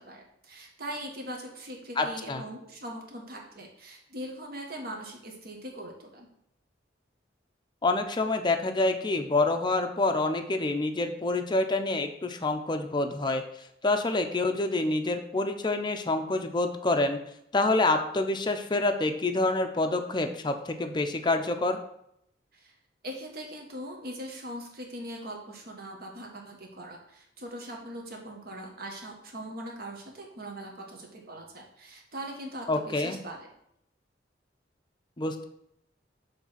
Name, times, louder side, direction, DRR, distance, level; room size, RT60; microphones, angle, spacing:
voice 1, 0.0-6.3 22.5-22.7 23.0-33.5, right 1 dB, 55° right, 1 dB, 1.5 m, -41 dB
voice 2, 2.0-2.4 7.8-13.4 13.8-17.2 17.5-21.8 32.7-33.2 35.2-35.4, left 2 dB, 25° left, 5 dB, 0.6 m, -27 dB
7.1 x 3.3 x 5.7 m, 0.75 s
head